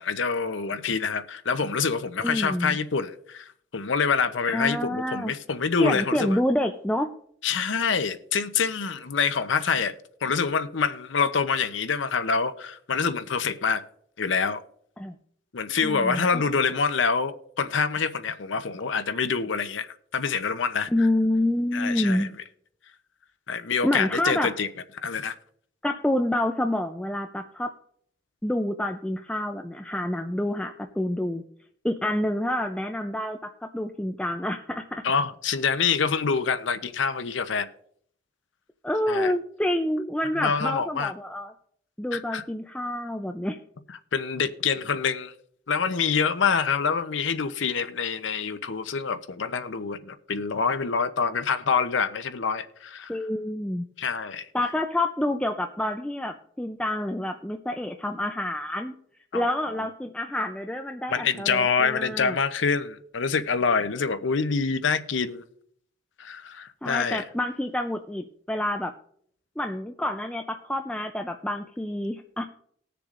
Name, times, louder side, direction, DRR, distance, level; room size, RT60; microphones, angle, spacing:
voice 1, 0.0-6.4 7.4-9.9 10.2-13.8 14.2-14.6 15.5-21.1 21.7-22.3 23.5-24.7 25.0-25.3 35.0-37.7 39.1-39.3 40.4-41.1 42.1-42.4 44.1-45.3 45.7-53.2 54.0-54.5 59.3-59.5 61.1-65.4 66.2-67.2, left 5 dB, 80° left, 0.7 m, -26 dB
voice 2, 2.2-2.8 4.5-5.3 5.8-7.1 15.0-15.1 15.8-16.4 20.9-22.3 23.8-24.5 25.8-27.7 28.4-31.4 31.8-35.0 38.8-41.5 42.0-43.6 53.1-53.9 54.5-58.9 59.3-62.4 66.8-68.9 69.6-72.4, left 1 dB, 5° left, 0.4 m, -28 dB
20.0 x 6.8 x 2.5 m
head